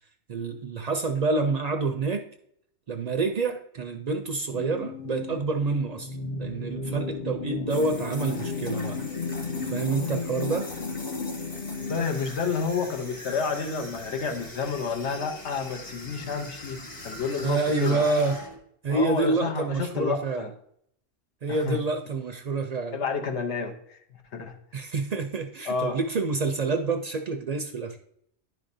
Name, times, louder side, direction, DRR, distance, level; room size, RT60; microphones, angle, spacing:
voice 1, 0.3-2.2 2.9-9.0 9.7-10.7 17.4-18.4 18.8-20.4 21.4-23.0 24.7-28.0, right 3 dB, 55° right, 7 dB, 0.4 m, -27 dB
sound 1, 4.5-12.0, left 4 dB, 60° left, 0.4 m, -34 dB
sound 2, 7.7-18.6, left 1 dB, 40° left, 1.2 m, -41 dB
voice 2, 11.9-18.0 18.9-20.5 21.5-21.8 22.9-24.5 25.7-26.0, left 5 dB, 85° left, 5 dB, 1.1 m, -30 dB
10.5 x 5.1 x 2.6 m, 0.69 s
omnidirectional pair, 1.1 m